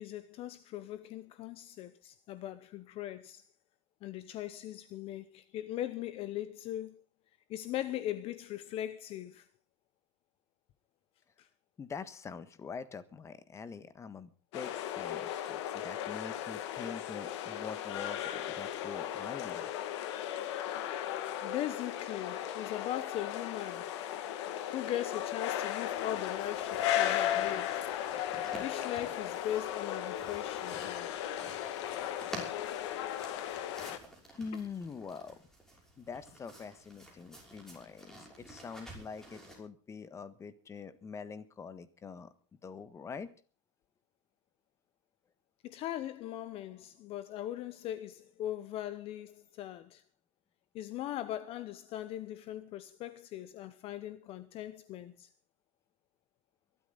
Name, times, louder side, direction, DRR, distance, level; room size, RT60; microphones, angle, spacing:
voice 1, 0.0-3.4 4.0-7.0 7.5-9.5 11.4-11.5 21.4-23.9 24.7-27.9 28.6-31.3 34.5-34.6 45.6-50.0 50.7-55.3, left 12 dB, 40° left, 0.9 m, -40 dB
voice 2, 11.8-19.7 34.3-35.4 36.0-42.3 42.6-43.3, left 5 dB, 20° left, 1.4 m, -44 dB
sound 1, 14.5-34.0, left 11 dB, 70° left, 1.9 m, -36 dB
sound 2, 26.0-39.6, right 1 dB, 5° left, 5.9 m, -51 dB
22.5 x 12.5 x 4.0 m
supercardioid pair, 140°, 15 cm